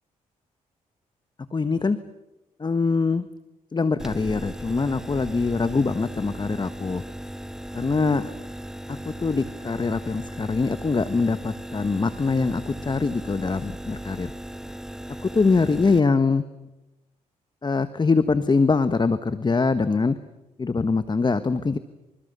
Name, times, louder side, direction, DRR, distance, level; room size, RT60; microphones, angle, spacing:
voice 1, 1.5-2.0 2.6-3.2 3.7-7.0 7.7-8.3 8.9-14.3 15.2-16.4 17.6-20.1 20.6-21.8, left 4 dB, 30° left, 12 dB, 1.3 m, -23 dB
sound 1, 4.0-16.0, equal, 5° right, 1.2 m, -37 dB
29.5 x 27.0 x 6.9 m, 1.0 s
supercardioid pair, 60°, 15 cm